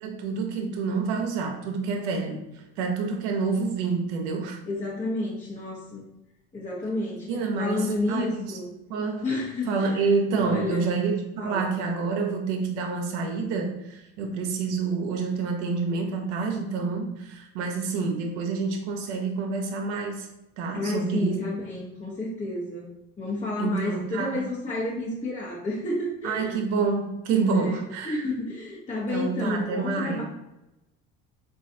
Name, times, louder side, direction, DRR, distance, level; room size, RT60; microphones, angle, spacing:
voice 1, 0.0-4.6 7.3-8.6 8.9-9.3 9.7-20.3 20.6-21.4 23.6-24.4 26.2-28.3 29.1-30.2, right 4 dB, 85° right, 3 dB, 0.7 m, -28 dB
voice 2, 4.7-6.0 6.5-7.3 7.6-8.8 9.2-10.0 10.3-10.9 11.4-11.7 20.7-22.9 23.2-26.6 27.5-30.2, left 2 dB, 20° left, -6 dB, 0.8 m, -30 dB
3.8 x 2.4 x 2.6 m, 0.92 s
supercardioid pair, 75°, 34 cm